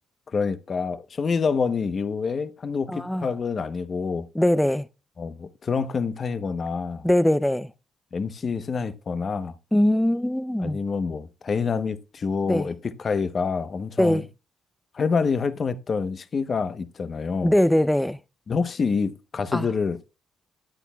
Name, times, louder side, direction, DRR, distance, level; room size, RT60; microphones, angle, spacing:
voice 1, 0.3-4.3 5.2-7.1 8.1-9.5 10.6-14.2 14.9-17.5 18.5-20.1, left 5 dB, 45° left, 0.8 m, -27 dB
voice 2, 2.9-3.3 4.3-4.9 7.0-7.7 9.7-10.8 12.5-12.7 14.0-14.2 17.4-18.2 19.5-19.7, left 1 dB, 5° left, 0.4 m, -21 dB
13.0 x 9.2 x 2.3 m
cardioid pair, 90°, 0 cm